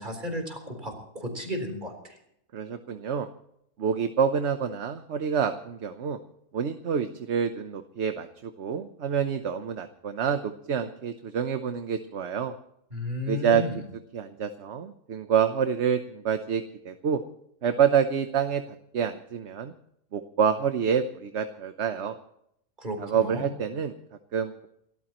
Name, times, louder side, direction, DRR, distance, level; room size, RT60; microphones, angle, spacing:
voice 1, 0.0-2.1 12.9-13.8 22.8-23.5, left 1 dB, 35° right, 3 dB, 4.2 m, -33 dB
voice 2, 2.5-3.3 3.8-6.2 6.5-12.5 13.3-13.6 14.1-17.2 17.6-19.7 20.1-22.1 23.0-23.9 24.3-24.7, right 7 dB, 55° right, 8 dB, 1.1 m, -27 dB
29.0 x 14.0 x 3.0 m, 0.75 s
omnidirectional pair, 1.5 m